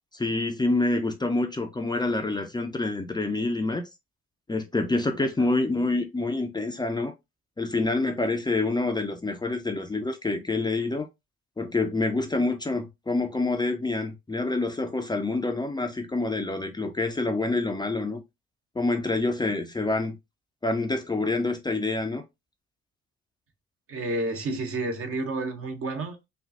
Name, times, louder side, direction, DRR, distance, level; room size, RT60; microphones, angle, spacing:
voice 1, 0.1-3.8 4.5-7.1 7.6-11.1 11.6-18.2 18.8-20.1 20.6-22.2, left 2 dB, 15° left, 0.6 m, -27 dB
voice 2, 23.9-26.3, right 2 dB, 45° right, 1.1 m, -30 dB
5.3 x 2.4 x 2.5 m
figure-of-eight pair, 45°, 33 cm